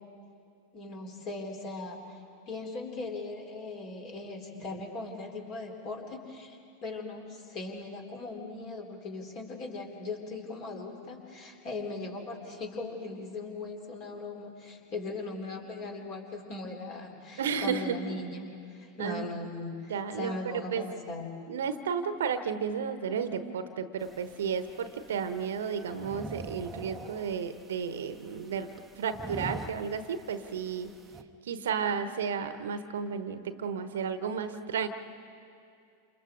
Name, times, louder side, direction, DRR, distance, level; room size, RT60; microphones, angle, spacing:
voice 1, 0.7-21.3, left 3 dB, 40° left, 2 dB, 3.8 m, -39 dB
voice 2, 17.4-18.0 19.0-19.3 19.9-20.8 21.5-28.7 29.0-30.9 31.4-34.9, right 6 dB, 60° right, 11 dB, 1.1 m, -33 dB
sound 1, 24.0-31.2, right 2 dB, 15° right, 1.0 m, -45 dB
28.5 x 28.0 x 3.9 m, 2.4 s
figure-of-eight pair, 90°, 0 cm